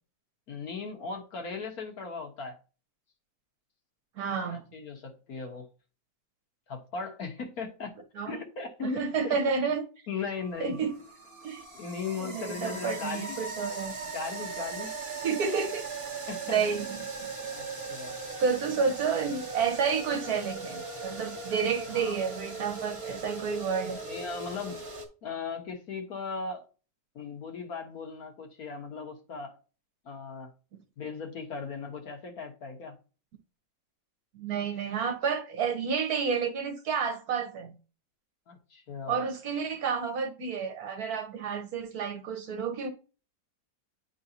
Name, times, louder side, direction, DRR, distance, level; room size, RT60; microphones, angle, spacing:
voice 1, 0.5-2.6 4.4-5.7 6.7-7.9 8.2-9.4 10.1-10.8 11.7-13.4 14.1-14.9 15.5-15.6 16.3-16.6 17.5-18.1 21.9-22.2 24.0-24.8 25.2-26.6 27.1-29.6 30.0-30.5 31.0-33.0 38.5-39.2, left 5 dB, 60° left, 1.6 m, -38 dB
voice 2, 4.2-4.6 8.2-8.4 8.8-9.9 10.6-11.0 11.4-11.6 12.2-14.0 15.2-15.8 16.5-17.3 18.4-24.0 34.3-37.7 39.1-42.9, right 6 dB, 65° right, 1.4 m, -30 dB
sound 1, 10.4-25.1, right 3 dB, 40° right, 1.6 m, -39 dB
10.0 x 3.9 x 2.8 m
omnidirectional pair, 1.8 m